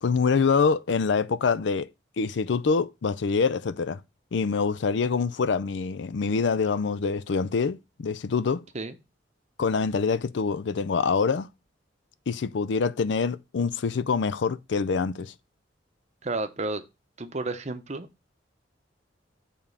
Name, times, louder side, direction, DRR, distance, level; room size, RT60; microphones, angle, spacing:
voice 1, 0.0-1.9 2.2-4.0 4.3-8.6 9.6-11.5 12.3-15.3, left 5 dB, 70° left, 0.5 m, -25 dB
voice 2, 16.2-16.8 17.2-18.1, right 2 dB, 40° right, 0.8 m, -31 dB
7.0 x 3.6 x 5.5 m
head